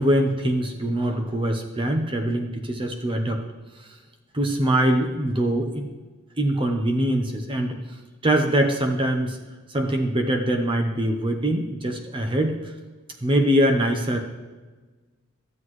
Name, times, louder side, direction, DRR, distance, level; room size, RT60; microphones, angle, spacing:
voice 1, 0.0-3.4 4.3-5.9 6.4-7.8 8.2-9.4 9.7-12.6 13.2-14.2, right 1 dB, 25° right, 4 dB, 0.8 m, -23 dB
13.0 x 7.5 x 3.2 m, 1.3 s
head